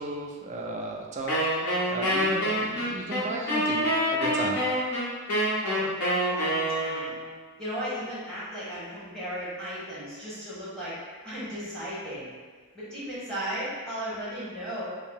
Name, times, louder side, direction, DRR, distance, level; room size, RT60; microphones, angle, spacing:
voice 1, 0.0-4.6, right 2 dB, 30° right, 0 dB, 0.3 m, -35 dB
Wind instrument woodwind instrument, 1.3-7.3, equal, 80° left, 0.9 m, -26 dB
voice 2, 5.6-5.9 6.3-7.1 7.6-11.0 11.2-12.3 12.7-14.8, equal, 5° left, -10 dB, 1.0 m, -35 dB
2.7 x 2.0 x 3.5 m, 1.4 s
head